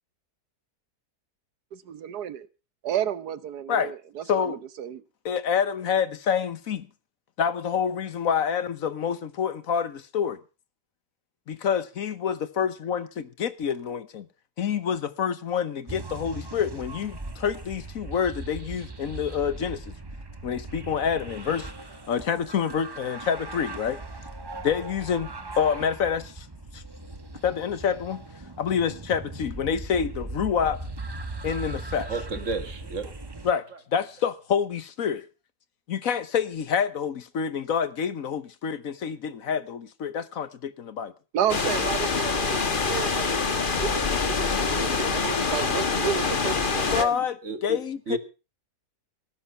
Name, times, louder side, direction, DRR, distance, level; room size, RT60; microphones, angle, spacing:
voice 1, 1.7-2.5 2.8-5.0 41.3-47.3, right 9 dB, 80° right, 1.5 m, -32 dB
voice 2, 4.3-4.6 5.2-6.9 7.4-10.4 11.5-14.3 14.6-19.9 20.4-21.7 22.1-24.0 24.6-25.3 25.6-26.5 26.7-26.8 27.4-28.2 28.6-30.8 31.4-32.1 33.4-33.6 33.9-35.2 35.9-41.1 46.9-47.3 47.6-48.2, left 7 dB, 60° left, 1.3 m, -27 dB
sound 1, 15.9-33.5, right 2 dB, 20° right, 0.8 m, -39 dB
voice 3, 32.1-33.1 47.4-47.8 48.1-48.2, right 3 dB, 50° right, 2.0 m, -31 dB
sound 2, 41.5-47.0, left 4 dB, 35° left, 1.4 m, -25 dB
18.5 x 10.0 x 5.7 m
omnidirectional pair, 1.7 m